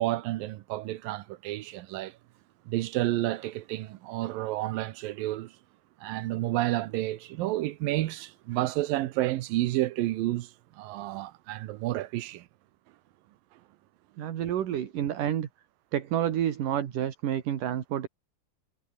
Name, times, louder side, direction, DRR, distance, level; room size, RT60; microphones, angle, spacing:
voice 1, 0.0-2.2 2.7-5.5 6.0-12.5, right 16 dB, 85° right, 2.6 m, -30 dB
voice 2, 14.2-15.5 15.9-18.1, right 10 dB, 70° right, 3.4 m, -29 dB
omnidirectional pair, 4.0 m